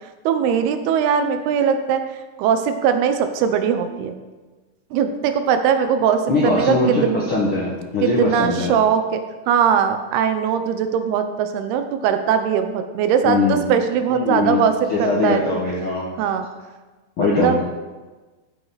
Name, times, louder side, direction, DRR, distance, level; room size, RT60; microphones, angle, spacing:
voice 1, 0.0-4.1 4.9-7.2 8.0-15.6 16.2-16.5 17.2-17.6, right 7 dB, 90° right, 8 dB, 2.8 m, -20 dB
voice 2, 6.3-8.7 13.2-13.6 14.1-14.6 14.9-16.1 17.2-17.5, left 3 dB, 70° left, -3 dB, 1.3 m, -21 dB
14.0 x 8.0 x 4.1 m, 1.3 s
omnidirectional pair, 4.5 m